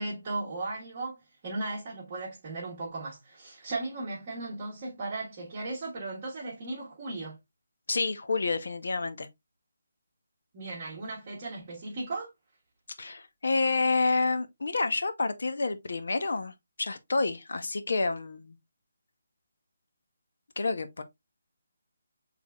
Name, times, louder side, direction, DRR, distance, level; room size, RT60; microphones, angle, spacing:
voice 1, 0.0-7.4 10.5-12.3, right 2 dB, 25° right, 1.3 m, -36 dB
voice 2, 7.9-9.3 13.0-18.6 20.6-21.0, left 3 dB, 65° left, 0.8 m, -29 dB
6.4 x 3.4 x 2.3 m
hypercardioid pair, 175°, 0 cm